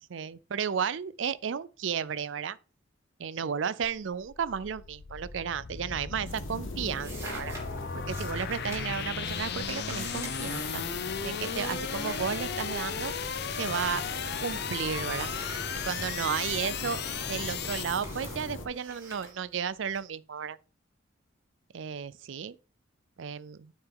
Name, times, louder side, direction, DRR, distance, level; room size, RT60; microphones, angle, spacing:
voice 1, 0.1-2.6 3.2-7.5 7.9-10.9 11.2-14.0 14.4-15.3 15.8-17.0 17.3-20.6 21.7-22.6 23.2-23.7, right 7 dB, 75° right, 0.5 m, -33 dB
sound 1, 3.8-18.0, left 7 dB, 60° left, 0.7 m, -36 dB
sound 2, 5.6-6.1 6.3-13.1 13.4-14.6 15.1-20.0, right 1 dB, 15° right, 3.7 m, -47 dB
sound 3, 6.2-18.7, left 1 dB, 90° left, 1.7 m, -41 dB
9.0 x 6.5 x 3.8 m
head